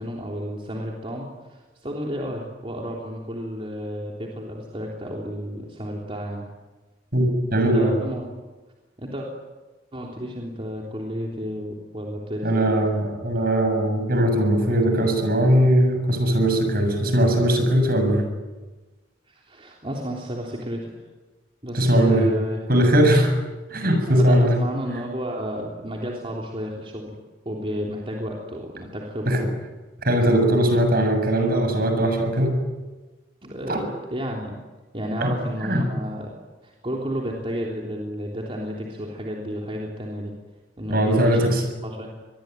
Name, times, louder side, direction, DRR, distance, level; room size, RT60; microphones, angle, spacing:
voice 1, 0.0-6.5 7.6-8.3 9.0-9.3 9.9-12.7 19.3-20.9 21.6-22.7 24.1-27.1 27.5-29.6 33.4-34.5 34.9-36.3 36.6-40.3 40.8-41.5 41.8-42.2, equal, 30° right, -2 dB, 3.5 m, -32 dB
voice 2, 7.1-7.9 12.4-18.3 21.7-22.3 22.7-23.3 23.7-24.6 29.3-29.5 30.0-32.6 33.7-33.8 35.2-35.3 35.6-35.9 40.9-41.6, right 1 dB, 50° right, 6 dB, 7.2 m, -20 dB
26.0 x 21.5 x 9.3 m, 1.2 s
head